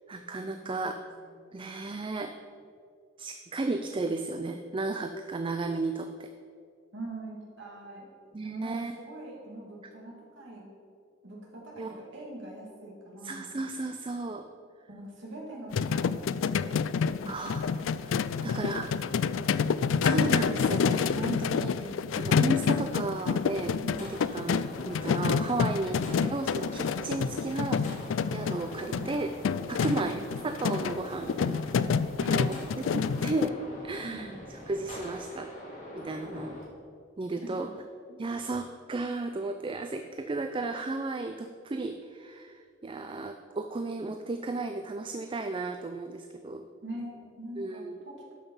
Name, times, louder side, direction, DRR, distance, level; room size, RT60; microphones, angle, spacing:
voice 1, 0.1-1.0 1.5-2.3 3.2-6.3 8.3-8.9 11.8-12.0 13.2-14.5 17.3-18.1 18.4-18.9 20.0-23.8 24.0-27.8 28.3-29.3 29.7-32.0 32.3-32.6 32.9-33.6 33.8-34.3 34.7-35.5 35.9-36.5 37.2-37.7 38.2-46.7 47.6-48.0, right 3 dB, 25° right, 7 dB, 0.4 m, -34 dB
voice 2, 1.2-1.5 6.9-8.1 8.4-10.6 11.2-13.5 14.9-16.2 16.5-17.9 18.2-19.6 21.7-22.1 23.8-24.1 28.9-29.2 29.8-30.2 32.2-32.3 34.0-34.3 37.3-37.5 38.1-38.2 46.8-48.3, right 1 dB, 65° right, -2 dB, 2.6 m, -44 dB
sound 1, 15.7-33.5, left 6 dB, 80° left, 0.3 m, -28 dB
sound 2, 23.9-36.6, equal, 40° left, 2.4 m, -44 dB
12.0 x 5.8 x 5.5 m, 2.3 s
head